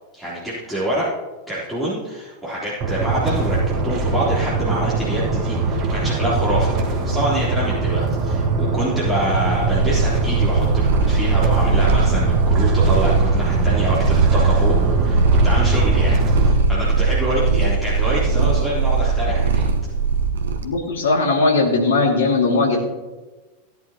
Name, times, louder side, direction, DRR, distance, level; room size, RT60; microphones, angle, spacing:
voice 1, 0.1-1.1 1.5-3.6 3.8-19.6, equal, 5° left, -8 dB, 3.6 m, -26 dB
sound 1, 2.8-16.5, right 3 dB, 35° right, 1.4 m, -21 dB
Purr, 9.4-20.7, right 4 dB, 65° right, 1.1 m, -20 dB
voice 2, 20.6-22.8, left 3 dB, 65° left, 1 dB, 2.3 m, -18 dB
16.5 x 10.5 x 3.0 m, 1.2 s
figure-of-eight pair, 90°, 0 cm